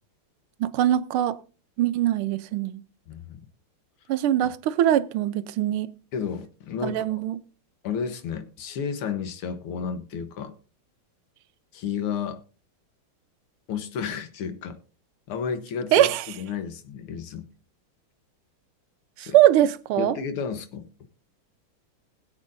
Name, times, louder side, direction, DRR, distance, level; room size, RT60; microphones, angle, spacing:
voice 1, 0.6-1.4 1.8-2.8 4.1-5.9 6.8-7.4 15.9-16.2 19.2-20.2, right 12 dB, 85° right, 1.6 m, -22 dB
voice 2, 3.1-3.4 6.1-7.1 7.8-10.5 11.7-12.4 13.7-14.8 15.3-17.5 19.2-19.4 20.0-20.9, left 6 dB, 85° left, 2.1 m, -32 dB
20.5 x 8.1 x 2.6 m
omnidirectional pair, 2.3 m